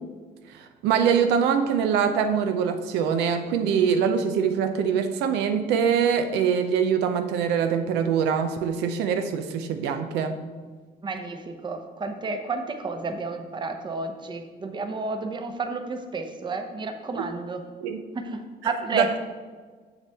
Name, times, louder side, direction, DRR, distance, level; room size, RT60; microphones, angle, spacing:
voice 1, 0.5-10.4 17.8-18.0 18.9-19.2, right 7 dB, 90° right, 7 dB, 0.6 m, -24 dB
voice 2, 11.0-17.6 18.1-19.2, right 3 dB, 25° right, 6 dB, 0.8 m, -31 dB
7.1 x 6.8 x 3.5 m, 1.5 s
cardioid pair, 110°, 17 cm